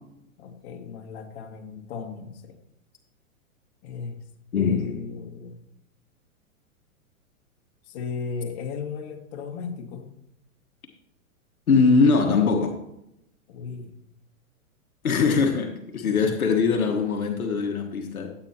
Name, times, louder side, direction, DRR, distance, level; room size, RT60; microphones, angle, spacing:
voice 1, 0.4-2.6 3.8-4.2 4.5-5.6 7.8-10.1 13.5-13.9 16.0-16.3, left 5 dB, 50° left, 2 dB, 2.1 m, -36 dB
voice 2, 4.5-4.9 11.7-12.7 15.0-18.3, left 4 dB, 80° left, 3 dB, 1.5 m, -21 dB
14.0 x 8.6 x 2.9 m, 0.81 s
hypercardioid pair, 115°, 42 cm